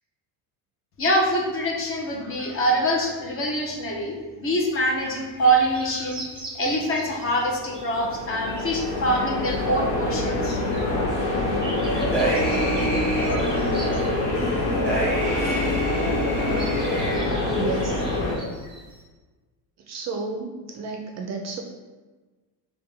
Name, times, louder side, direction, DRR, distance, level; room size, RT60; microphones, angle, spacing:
voice 1, 1.0-6.2 6.5-10.6, right 1 dB, 30° left, 0 dB, 0.6 m, -24 dB
sound 1, 5.4-7.5 7.7-9.1 9.5-9.8 10.4-11.1 11.4-14.6 15.6-15.7 16.0-16.1 16.4-19.0, right 1 dB, 10° right, 0.8 m, -42 dB
sound 2, 7.5-18.3, left 2 dB, 70° left, 1.2 m, -25 dB
sound 3, 11.8-13.3 14.0-17.2, right 1 dB, 5° left, 1.1 m, -28 dB
voice 2, 17.5-18.0 19.9-21.6, right 3 dB, 40° right, 1 dB, 0.4 m, -31 dB
4.5 x 2.3 x 3.2 m, 1.3 s
cardioid pair, 125°, 45 cm